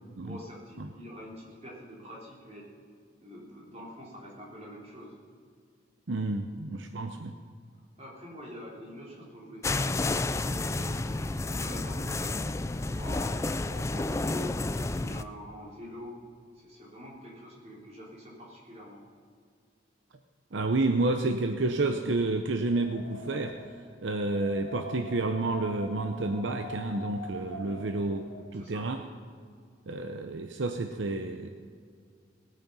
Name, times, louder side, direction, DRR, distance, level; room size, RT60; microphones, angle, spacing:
voice 1, 0.2-2.7 3.2-5.2 6.4-6.5 8.0-14.5 14.9-16.1 16.5-19.0 27.6-27.8 28.5-28.9, equal, 35° right, -4 dB, 4.0 m, -45 dB
voice 2, 6.1-7.3 20.5-23.5 24.0-28.2 28.5-29.0 29.9-31.5, right 2 dB, 70° right, 6 dB, 0.7 m, -30 dB
sound 1, 9.6-15.2, left 2 dB, 15° left, 0.3 m, -30 dB
Wind, 22.5-28.5, equal, 80° left, 2.2 m, -44 dB
19.5 x 9.0 x 5.5 m, 2.2 s
head